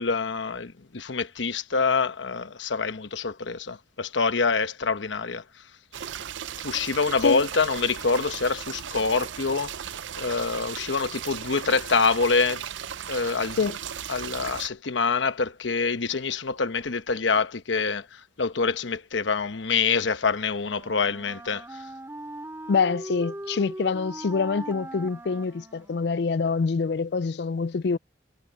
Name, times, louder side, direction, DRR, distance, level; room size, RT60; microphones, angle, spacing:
voice 1, 0.0-5.4 6.6-9.9 10.2-12.6 13.1-13.7 14.1-21.6, left 4 dB, 85° left, 1.1 m, -26 dB
sound 1, 5.9-14.7, right 9 dB, 90° right, 0.6 m, -37 dB
Wind instrument woodwind instrument, 20.5-26.4, right 1 dB, 15° right, 3.9 m, -40 dB
voice 2, 22.7-28.0, left 5 dB, 65° left, 0.4 m, -25 dB
head